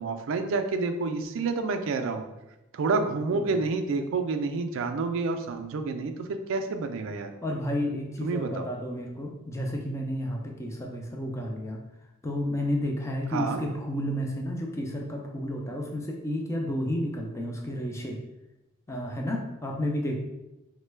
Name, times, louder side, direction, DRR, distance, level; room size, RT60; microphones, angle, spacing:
voice 1, 0.0-2.2 2.7-7.3 8.2-8.6 13.3-13.6, right 4 dB, 65° right, 7 dB, 0.3 m, -29 dB
voice 2, 3.3-3.6 7.4-11.8 12.2-18.2 18.9-20.2, equal, 15° left, 1 dB, 0.4 m, -31 dB
3.0 x 2.2 x 3.2 m, 0.97 s
head